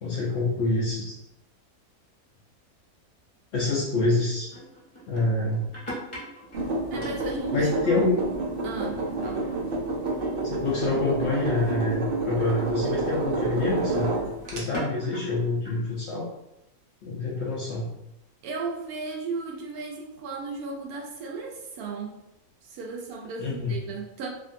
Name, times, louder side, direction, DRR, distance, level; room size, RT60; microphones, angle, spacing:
voice 1, 0.0-1.1 3.5-4.5 5.1-5.7 7.5-8.2 10.4-14.2 14.5-16.3 17.0-17.9 23.4-23.8, left 2 dB, 65° left, -3 dB, 0.7 m, -26 dB
sound 1, 4.5-7.5 7.8-8.2 8.5-11.1 11.6-12.0 13.1-13.3 13.7-15.9, equal, 25° left, 0.7 m, -43 dB
sound 2, 6.5-14.6, right 3 dB, 55° right, 0.6 m, -29 dB
voice 2, 6.9-8.0 8.6-9.5 18.4-22.2 22.6-24.3, right 4 dB, 80° right, 1 dB, 1.1 m, -35 dB
2.9 x 2.6 x 2.5 m, 0.85 s
omnidirectional pair, 1.6 m